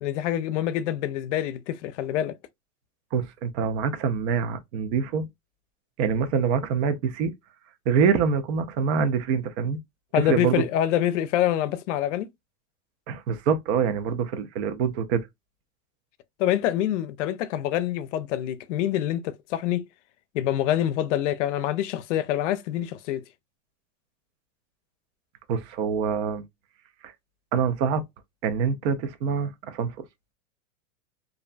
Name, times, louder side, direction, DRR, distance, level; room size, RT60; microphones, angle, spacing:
voice 1, 0.0-2.3 10.1-12.3 16.4-19.9 20.3-23.2, left 12 dB, 65° left, 0.5 m, -26 dB
voice 2, 3.1-5.3 6.0-7.3 7.9-9.8 10.1-10.6 13.1-15.2 25.5-26.4 27.0-27.1 27.5-28.0 28.4-30.0, right 6 dB, 55° right, 0.7 m, -25 dB
2.5 x 2.1 x 2.4 m
hypercardioid pair, 120°, 39 cm